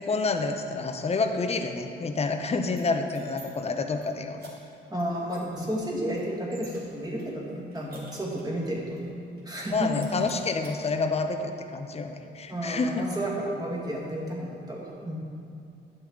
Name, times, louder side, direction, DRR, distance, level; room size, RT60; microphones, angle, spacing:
voice 1, 0.0-4.6 9.7-13.1, left 3 dB, 30° left, 6 dB, 0.7 m, -28 dB
sound 1, 2.8-3.5 3.8-4.1 4.4-4.5 5.0-5.1 5.3-6.8 7.2-8.6 9.0-9.1 9.4-9.7 9.9-10.7, right 3 dB, 50° right, 2.2 m, -51 dB
voice 2, 4.9-9.1 9.4-9.9 12.5-15.2, right 1 dB, 20° right, -4 dB, 2.0 m, -32 dB
10.0 x 6.8 x 3.8 m, 2.6 s
cardioid pair, 90°, 20 cm